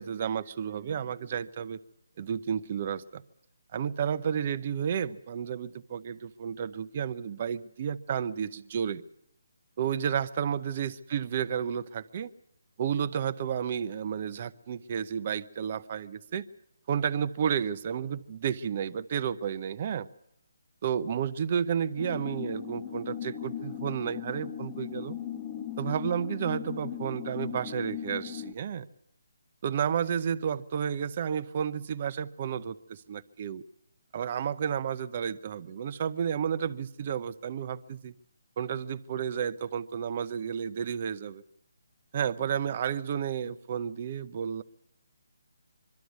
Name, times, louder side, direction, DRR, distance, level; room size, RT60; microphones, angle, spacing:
voice 1, 0.0-1.8 2.2-3.2 3.7-9.0 9.8-12.3 12.8-16.5 16.9-20.1 20.8-25.2 25.8-28.8 29.6-33.6 34.1-38.1 38.6-41.4 42.1-44.6, right 8 dB, 35° right, 0.7 m, -31 dB
sound 1, 22.0-28.5, left 10 dB, 15° left, 0.8 m, -38 dB
23.0 x 13.0 x 9.4 m
hypercardioid pair, 165°, 0 cm